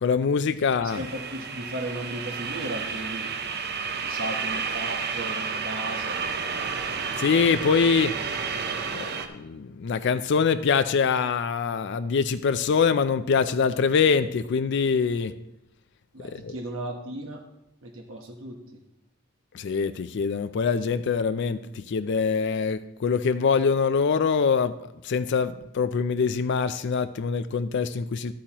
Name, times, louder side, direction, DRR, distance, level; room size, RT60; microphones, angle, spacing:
voice 1, 0.0-1.0 7.2-8.4 8.9-15.3 16.2-16.6 19.5-24.7 25.0-28.3, left 5 dB, 60° left, 11 dB, 0.4 m, -24 dB
voice 2, 0.8-3.3 4.0-6.2 16.1-17.4 17.8-18.8, right 1 dB, 70° right, 2 dB, 1.2 m, -35 dB
sound 1, 0.9-9.3, right 5 dB, 50° right, 0.7 m, -31 dB
11.5 x 8.7 x 2.9 m, 0.85 s
head